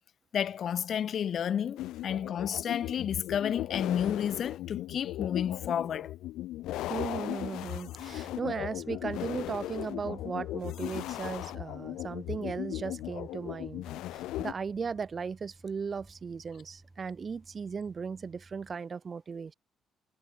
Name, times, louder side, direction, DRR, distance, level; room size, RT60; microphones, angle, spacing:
voice 1, 0.3-6.1, left 8 dB, 60° left, 0.6 m, -31 dB
sound 1, 1.8-14.5, left 15 dB, 90° left, 2.9 m, -37 dB
voice 2, 6.9-19.5, right 5 dB, 40° right, 0.8 m, -37 dB
sound 2, 7.9-18.7, right 2 dB, 15° right, 6.5 m, -56 dB
cardioid pair, 90°, 0 cm